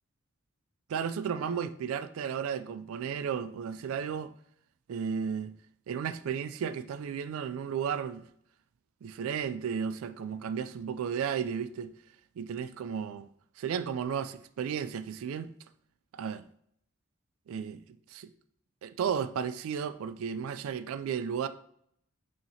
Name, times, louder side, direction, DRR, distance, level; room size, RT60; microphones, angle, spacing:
voice 1, 0.9-4.3 4.9-5.5 5.9-8.2 9.0-11.9 12.4-13.3 13.6-15.5 16.1-16.5 17.5-17.8 18.1-18.3 18.8-21.5, right 7 dB, 75° right, 0.3 m, -34 dB
5.7 x 2.9 x 2.7 m
head